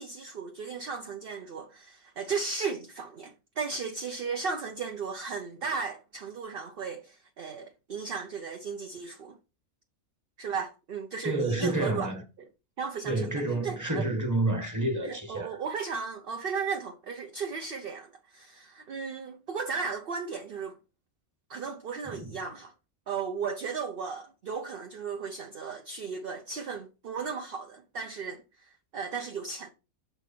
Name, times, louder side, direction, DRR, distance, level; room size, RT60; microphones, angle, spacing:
voice 1, 0.0-9.4 10.4-12.1 12.4-12.5 12.8-13.3 13.6-14.1 15.0-20.8 21.5-22.7 23.1-29.7, right 5 dB, 50° right, 0.8 m, -35 dB
voice 2, 11.2-12.2 13.0-15.6 22.0-22.3, right 2 dB, 15° right, 1.5 m, -29 dB
6.5 x 4.5 x 4.3 m
omnidirectional pair, 1.5 m